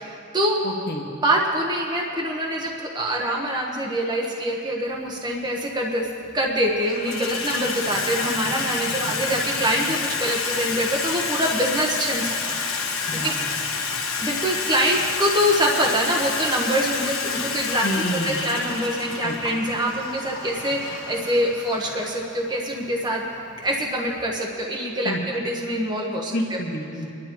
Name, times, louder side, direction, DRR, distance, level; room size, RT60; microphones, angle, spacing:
voice 1, 0.0-0.6 1.2-6.1 6.3-12.6 12.9-13.3 14.2-23.2 23.6-26.6, equal, 20° right, -1 dB, 1.1 m, -25 dB
voice 2, 0.6-1.1 9.0-9.1 13.0-13.3 13.9-14.0 17.8-18.4 19.2-19.4 25.0-25.2 26.3-27.2, equal, 50° left, 1 dB, 1.5 m, -29 dB
Water tap faucet / Sink (filling or washing), 5.0-5.1 6.0-6.4 6.7-24.3, left 5 dB, 75° left, 1.2 m, -29 dB
29.5 x 11.0 x 3.0 m, 2.6 s
head